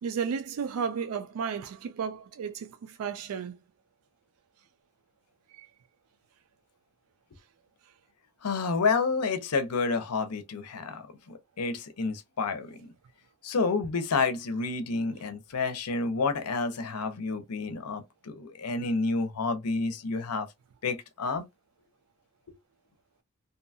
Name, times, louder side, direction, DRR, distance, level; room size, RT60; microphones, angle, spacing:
voice 1, 0.0-3.6 5.5-5.7, right 6 dB, 70° right, 0.3 m, -33 dB
voice 2, 8.4-12.9 13.4-20.5 20.8-21.4, left 4 dB, 85° left, 0.6 m, -29 dB
2.6 x 2.3 x 2.6 m
head